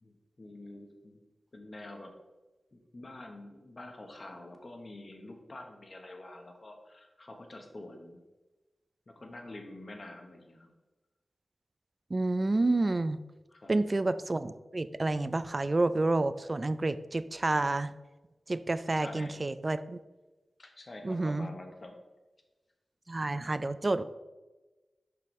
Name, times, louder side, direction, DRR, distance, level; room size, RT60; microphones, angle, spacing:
voice 1, 0.0-1.2 1.5-2.1 2.7-8.2 9.1-10.7 13.5-13.8 18.9-19.3 20.6-22.0, left 2 dB, 50° left, 3 dB, 1.1 m, -47 dB
voice 2, 12.1-13.2 13.7-17.9 18.5-20.0 21.0-21.5 23.1-24.0, right 2 dB, 40° right, 13 dB, 0.3 m, -29 dB
6.6 x 5.2 x 3.1 m, 1.1 s
cardioid pair, 50°, 0 cm